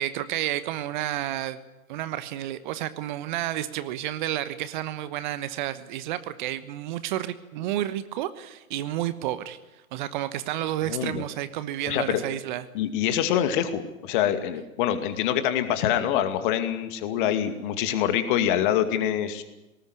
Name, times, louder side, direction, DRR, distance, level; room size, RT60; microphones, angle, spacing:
voice 1, 0.0-1.6 1.9-9.6 9.9-12.6, right 13 dB, 35° right, 14 dB, 1.1 m, -31 dB
voice 2, 10.9-11.2 11.9-12.2 12.7-19.4, left 10 dB, 35° left, 9 dB, 2.3 m, -25 dB
19.0 x 19.0 x 9.5 m, 0.99 s
figure-of-eight pair, 115°, 41 cm